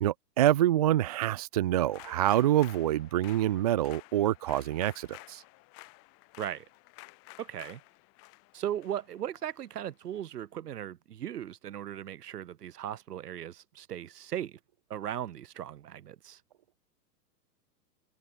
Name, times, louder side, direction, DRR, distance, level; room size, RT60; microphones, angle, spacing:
voice 1, 0.0-5.4, right 13 dB, 25° right, 0.6 m, -26 dB
sound 1, 1.8-10.2, left 28 dB, 25° left, 8.0 m, -52 dB
voice 2, 7.4-7.8 8.5-14.6 14.9-16.4, right 10 dB, 65° right, 6.0 m, -37 dB
hypercardioid pair, 170°, 50 cm